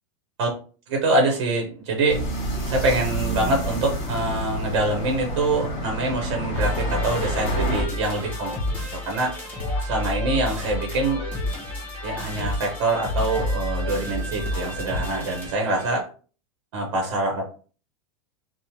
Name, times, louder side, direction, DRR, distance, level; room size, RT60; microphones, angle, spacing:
voice 1, 0.9-2.2 2.7-8.5 8.9-9.4 9.8-11.2 12.0-16.0 16.7-17.5, right 2 dB, 55° right, 1 dB, 0.7 m, -25 dB
sound 1, 2.1-7.8, right 1 dB, 50° left, 1.3 m, -29 dB
sound 2, 6.5-16.0, left 1 dB, 10° left, 0.9 m, -29 dB
2.8 x 2.0 x 2.9 m, 0.39 s
supercardioid pair, 170°, 16 cm